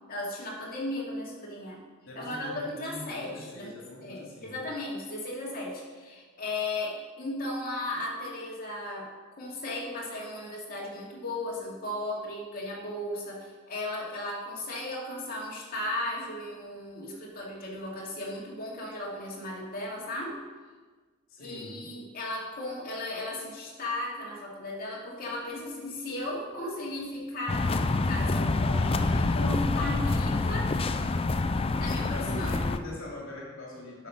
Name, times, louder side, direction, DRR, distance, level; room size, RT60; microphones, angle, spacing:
voice 1, 0.1-1.8 2.1-20.4 21.4-30.7 31.8-32.6, left 1 dB, 45° left, -4 dB, 2.6 m, -36 dB
voice 2, 2.0-4.6 21.3-21.9 32.0-34.1, left 1 dB, 65° left, -3 dB, 2.6 m, -42 dB
sound 1, 27.5-32.8, left 3 dB, 25° left, 0.4 m, -27 dB
10.5 x 6.2 x 5.3 m, 1.4 s
head